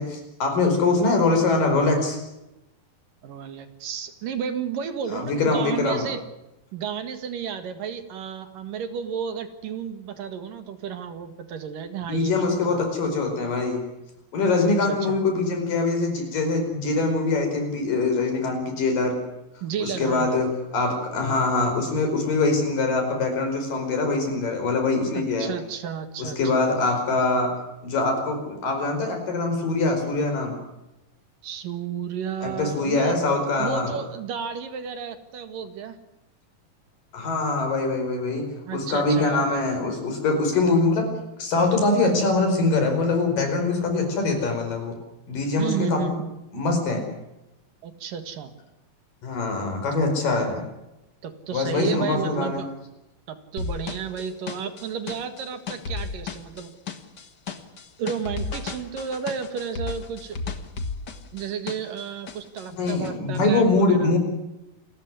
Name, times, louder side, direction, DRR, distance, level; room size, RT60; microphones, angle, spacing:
voice 1, 0.0-2.2 5.1-6.0 12.1-13.8 14.3-19.2 19.8-25.5 26.2-27.5 27.8-30.5 32.4-33.9 37.1-38.5 38.7-41.1 41.4-45.0 45.3-46.1 46.5-47.0 49.2-50.6 51.5-52.6 62.7-64.2, left 3 dB, 65° left, 5 dB, 6.6 m, -23 dB
voice 2, 3.2-6.2 6.7-12.8 14.6-15.2 19.6-20.5 25.1-26.4 31.4-33.2 33.6-36.0 38.7-39.6 45.6-46.3 47.8-48.5 50.3-50.4 51.2-52.7 53.3-56.7 58.0-60.4 61.3-64.1, right 7 dB, 70° right, 9 dB, 3.4 m, -32 dB
sound 1, 53.6-62.0 62.3-63.1, left 4 dB, 40° left, 1.5 m, -34 dB
28.5 x 14.0 x 9.7 m, 0.92 s
omnidirectional pair, 4.1 m